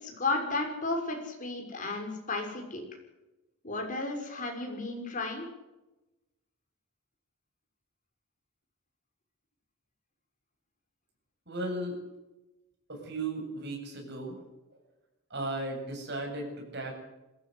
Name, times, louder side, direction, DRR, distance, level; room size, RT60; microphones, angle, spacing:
voice 1, 0.0-2.8 3.6-5.5, left 3 dB, 40° left, 2 dB, 6.1 m, -33 dB
voice 2, 11.5-12.0 12.9-14.4 15.3-16.9, right 2 dB, 55° right, 2 dB, 7.8 m, -35 dB
22.0 x 16.5 x 8.1 m, 1.0 s
head